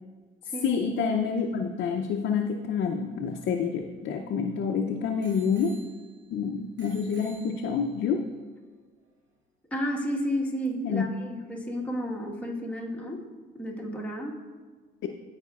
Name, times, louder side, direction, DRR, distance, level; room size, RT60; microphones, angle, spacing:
voice 1, 0.6-5.8 6.3-8.3 10.8-11.1 15.0-15.1, left 6 dB, 70° left, 3 dB, 0.5 m, -28 dB
Bicycle bell, 3.0-4.6 5.2-6.4 6.8-8.0 8.8-8.9, right 4 dB, 85° right, 1.9 m, -53 dB
voice 2, 9.7-13.2 13.5-14.4, equal, 5° left, -3 dB, 1.4 m, -32 dB
14.0 x 4.9 x 2.4 m, 1.4 s
cardioid pair, 90°, 20 cm